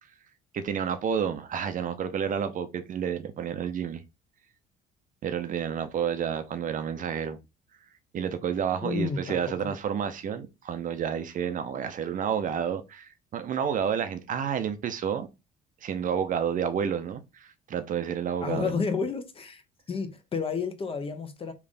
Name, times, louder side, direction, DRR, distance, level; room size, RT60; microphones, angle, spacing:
voice 1, 0.5-4.0 5.2-7.4 8.1-15.3 15.8-18.8, right 8 dB, 45° right, 0.6 m, -30 dB
voice 2, 8.8-9.7 18.4-19.6 19.9-21.5, left 5 dB, 30° left, 0.7 m, -31 dB
3.4 x 2.4 x 3.9 m
supercardioid pair, 90°, 18 cm